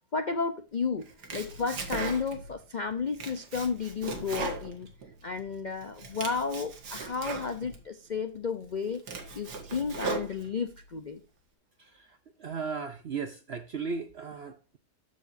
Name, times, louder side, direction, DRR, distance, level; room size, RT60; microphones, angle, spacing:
voice 1, 0.1-4.9 5.2-9.0 9.3-11.2, left 5 dB, 55° left, 0.5 m, -32 dB
Domestic sounds home sounds, 1.0-2.5 2.9-5.4 5.8-7.8 8.3-8.4 8.8-10.8, right 4 dB, 80° right, 2.2 m, -38 dB
voice 2, 12.4-14.8, right 5 dB, 60° right, 0.7 m, -36 dB
13.5 x 4.8 x 2.6 m
omnidirectional pair, 1.7 m